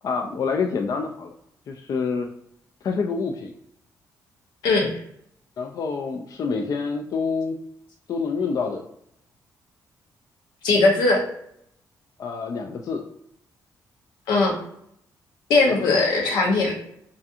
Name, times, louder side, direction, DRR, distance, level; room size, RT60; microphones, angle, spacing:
voice 1, 0.0-1.3 1.7-2.3 2.8-3.5 5.6-7.6 8.1-8.8 12.2-13.0 15.7-16.0, left 5 dB, 55° left, 3 dB, 0.3 m, -27 dB
voice 2, 10.6-11.2 14.3-14.5 15.5-16.7, left 3 dB, 90° left, 0 dB, 0.7 m, -19 dB
2.4 x 2.3 x 2.6 m, 0.72 s
cardioid pair, 75°, 7 cm